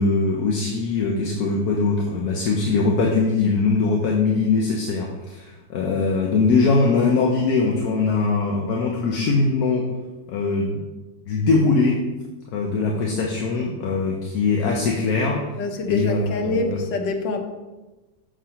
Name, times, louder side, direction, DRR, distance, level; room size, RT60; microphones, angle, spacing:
voice 1, 0.0-9.8 10.3-10.8 11.3-12.0 12.5-15.6 15.9-16.8, left 4 dB, 65° left, 0 dB, 1.2 m, -21 dB
voice 2, 15.6-17.4, left 3 dB, 90° left, 5 dB, 1.5 m, -26 dB
6.6 x 3.8 x 5.6 m, 1.1 s
omnidirectional pair, 1.9 m